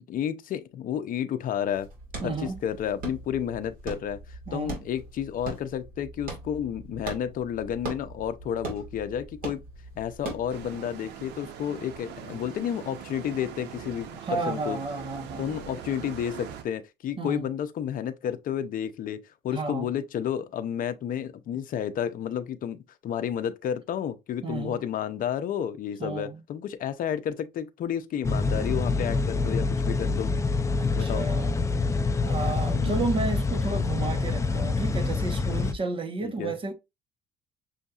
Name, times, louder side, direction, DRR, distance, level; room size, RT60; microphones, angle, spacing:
voice 1, 0.1-1.9 2.2-9.6 10.0-14.8 15.4-30.3 30.9-31.3 32.7-33.1 36.2-36.5, left 9 dB, 55° left, 0.6 m, -31 dB
sound 1, 1.7-10.7, right 2 dB, 55° right, 2.2 m, -40 dB
voice 2, 2.2-2.6 4.5-4.8 14.2-15.5 17.2-17.5 19.5-19.9 24.4-24.8 26.0-26.4 30.8-31.7 32.2-36.7, right 3 dB, 30° right, 1.2 m, -32 dB
sound 2, 10.5-16.6, right 9 dB, 80° right, 0.7 m, -42 dB
sound 3, 28.2-35.7, left 3 dB, 15° left, 0.5 m, -26 dB
6.3 x 2.6 x 2.4 m
cardioid pair, 110°, 17 cm